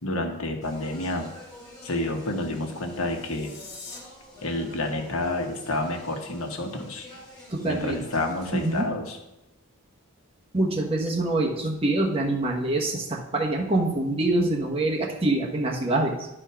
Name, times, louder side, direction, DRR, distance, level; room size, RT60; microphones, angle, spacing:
voice 1, 0.0-1.3 1.8-3.6 4.4-7.1 7.6-9.2, left 2 dB, 75° left, 3 dB, 1.3 m, -29 dB
Speech, 0.6-8.8, equal, 15° left, 3.0 m, -48 dB
sound 1, 3.0-4.0, left 3 dB, 50° left, 2.2 m, -43 dB
voice 2, 7.5-8.0 8.5-8.9 10.5-16.3, right 2 dB, 25° right, -1 dB, 1.1 m, -25 dB
11.0 x 4.4 x 5.7 m, 0.94 s
head